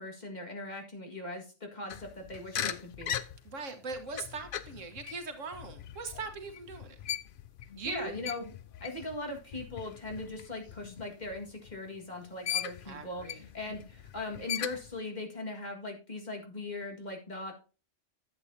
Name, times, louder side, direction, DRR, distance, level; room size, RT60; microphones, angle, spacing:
voice 1, 0.0-3.1 7.8-8.5 8.8-17.5, left 2 dB, 35° left, 2 dB, 2.0 m, -40 dB
sound 1, 1.9-12.0 12.4-15.0, left 10 dB, 55° left, 0.7 m, -40 dB
voice 2, 3.5-7.0 7.8-8.1 12.9-13.4, right 4 dB, 90° right, 7 dB, 1.7 m, -40 dB
11.5 x 8.0 x 2.7 m, 0.35 s
omnidirectional pair, 1.3 m